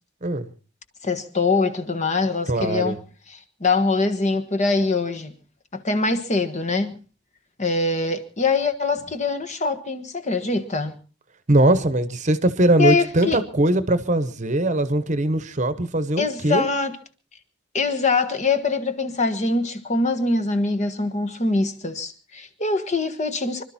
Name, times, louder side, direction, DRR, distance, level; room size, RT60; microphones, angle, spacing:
voice 1, 1.0-3.0 3.3-5.4 5.7-7.0 7.6-11.0 12.8-13.4 16.2-17.0 17.7-23.6, left 3 dB, 35° left, 1.4 m, -23 dB
voice 2, 2.5-3.0 11.5-16.7, right 1 dB, 35° right, 1.0 m, -21 dB
25.5 x 12.5 x 4.3 m
head